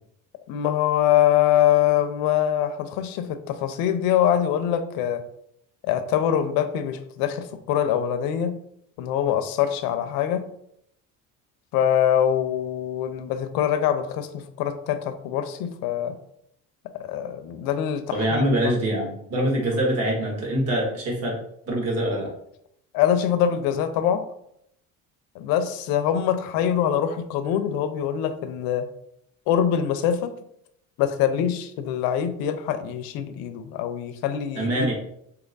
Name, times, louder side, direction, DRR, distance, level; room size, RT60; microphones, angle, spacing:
voice 1, 0.5-5.2 5.8-8.6 9.0-10.5 11.7-16.2 16.9-18.8 22.9-24.2 25.3-28.9 29.5-30.3 31.0-34.9, left 10 dB, 90° left, 10 dB, 0.6 m, -24 dB
voice 2, 18.1-21.3 21.7-22.3 34.5-34.9, right 1 dB, 45° right, -1 dB, 1.4 m, -24 dB
3.4 x 2.9 x 3.9 m, 0.73 s
cardioid pair, 165°, 34 cm